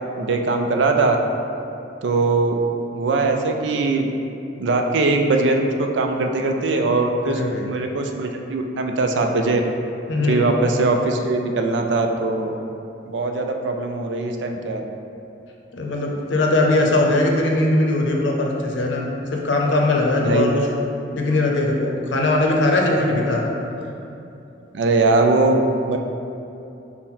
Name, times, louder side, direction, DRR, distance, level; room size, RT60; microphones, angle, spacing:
voice 1, 0.2-1.2 2.0-2.6 2.9-4.1 4.6-9.6 10.2-12.6 13.1-14.8 20.2-20.5 23.1-23.2 24.7-25.6 25.9-26.0, right 3 dB, 80° right, 4 dB, 0.4 m, -21 dB
voice 2, 7.3-7.7 10.1-10.5 15.7-19.1 19.3-20.7 21.1-23.6, left 2 dB, 80° left, 0 dB, 0.6 m, -20 dB
5.5 x 2.1 x 4.3 m, 2.8 s
head